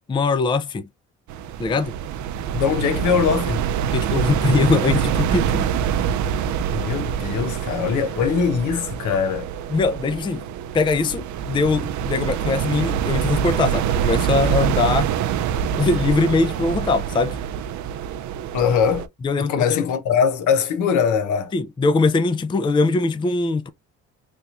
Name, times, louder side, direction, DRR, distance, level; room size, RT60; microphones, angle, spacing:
voice 1, 0.1-0.9 1.6-1.9 3.9-5.7 9.7-10.5 10.7-15.1 15.8-17.4 19.2-19.7 21.5-23.7, left 3 dB, 15° left, 0.4 m, -21 dB
sound 1, 1.3-19.1, right 8 dB, 70° right, 0.5 m, -25 dB
voice 2, 2.5-3.6 6.7-9.5 18.5-19.1 19.4-21.5, left 7 dB, 80° left, 0.9 m, -21 dB
3.4 x 2.9 x 2.4 m
cardioid pair, 90°, 30 cm